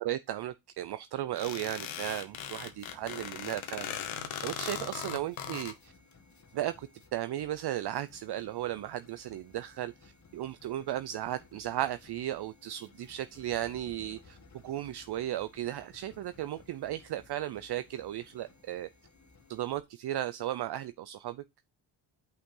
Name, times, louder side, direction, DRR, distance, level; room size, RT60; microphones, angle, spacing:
voice 1, 0.0-3.9 4.4-5.9 6.5-14.4 14.6-18.9 19.5-21.4, right 13 dB, 60° right, 0.5 m, -35 dB
sound 1, 1.4-5.7, left 9 dB, 90° left, 1.1 m, -39 dB
sound 2, 2.2-19.8, left 4 dB, 40° left, 1.6 m, -59 dB
6.5 x 5.8 x 3.7 m
cardioid pair, 70°, 46 cm